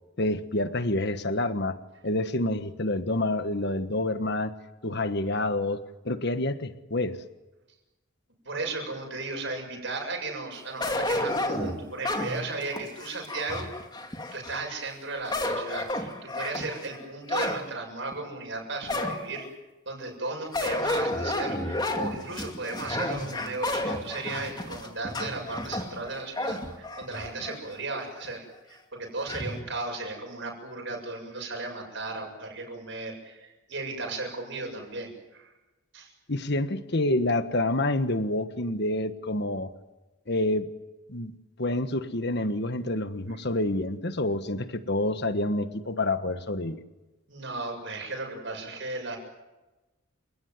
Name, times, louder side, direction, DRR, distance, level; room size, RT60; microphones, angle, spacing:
voice 1, 0.2-1.8 2.0-4.5 4.8-7.2 36.3-39.7 40.3-40.7 41.1-41.3 41.6-46.8, left 1 dB, 50° left, 10 dB, 1.4 m, -28 dB
voice 2, 8.4-13.7 14.3-19.5 19.9-35.5 35.9-36.1 47.3-49.2, right 3 dB, 60° right, 1 dB, 7.3 m, -35 dB
sound 1, 10.8-14.6 15.1-17.6 18.1-18.2 18.9-19.5 20.5-27.6 28.0-28.1 29.3-29.6, left 1 dB, 20° left, 2.4 m, -31 dB
29.5 x 18.5 x 9.4 m, 1.1 s
head